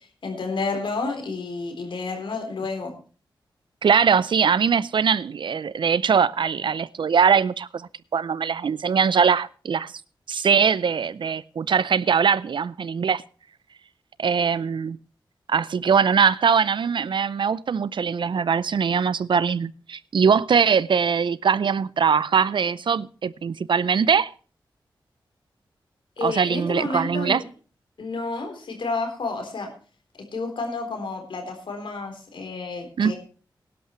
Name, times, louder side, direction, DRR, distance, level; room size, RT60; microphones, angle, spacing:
voice 1, 0.2-2.9 26.2-27.5 28.0-29.7 30.3-33.1, left 3 dB, 75° left, 3.8 m, -30 dB
voice 2, 3.8-9.9 10.3-13.2 14.2-15.0 15.5-24.3 26.2-27.4 33.0-33.1, right 6 dB, 65° right, 0.5 m, -21 dB
18.0 x 11.5 x 3.2 m
cardioid pair, 55°, 9 cm